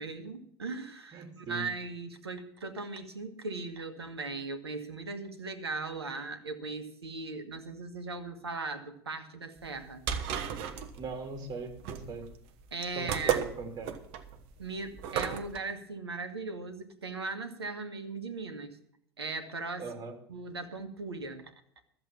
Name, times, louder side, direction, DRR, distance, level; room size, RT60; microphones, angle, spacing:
voice 1, 0.0-10.0 12.7-13.4 14.6-18.8 19.2-19.9 20.3-21.5, right 3 dB, 80° right, 8 dB, 1.6 m, -38 dB
voice 2, 1.1-1.6 11.0-12.2 12.9-13.9 19.8-20.2, right 4 dB, 30° right, 4 dB, 3.1 m, -40 dB
sound 1, 9.6-15.6, right 9 dB, 50° right, 1.3 m, -34 dB
13.5 x 7.7 x 7.1 m, 0.68 s
figure-of-eight pair, 80°, 13 cm